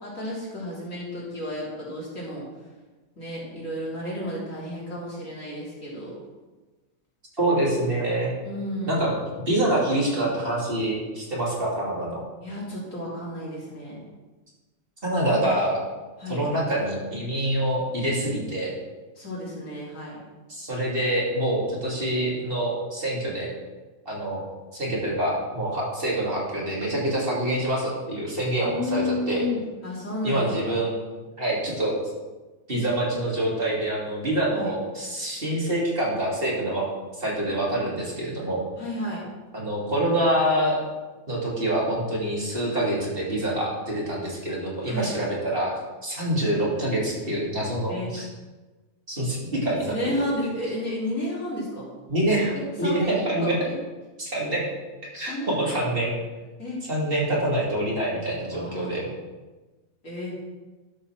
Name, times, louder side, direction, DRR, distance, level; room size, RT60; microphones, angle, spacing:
voice 1, 0.0-2.4 3.2-6.2 8.4-9.0 12.4-14.0 16.2-16.4 19.2-20.2 28.6-30.6 34.5-34.7 38.8-39.2 44.9-45.1 47.9-48.1 49.9-51.9 52.8-53.8 55.3-55.8 56.6-56.8 58.4-59.1 60.0-60.3, left 1 dB, 70° left, -6 dB, 3.8 m, -32 dB
voice 2, 7.4-8.3 8.9-9.2 9.5-12.2 15.0-15.8 16.3-18.7 20.5-23.5 24.0-24.4 24.7-29.4 30.2-31.0 31.4-31.9 32.7-36.8 37.2-38.6 39.5-40.8 41.3-45.7 46.0-48.3 49.1-49.9 52.1-53.6 54.2-54.6 55.1-56.1 56.9-59.1, right 1 dB, 45° right, -5 dB, 3.0 m, -26 dB
12.0 x 5.8 x 6.0 m, 1.2 s
omnidirectional pair, 1.4 m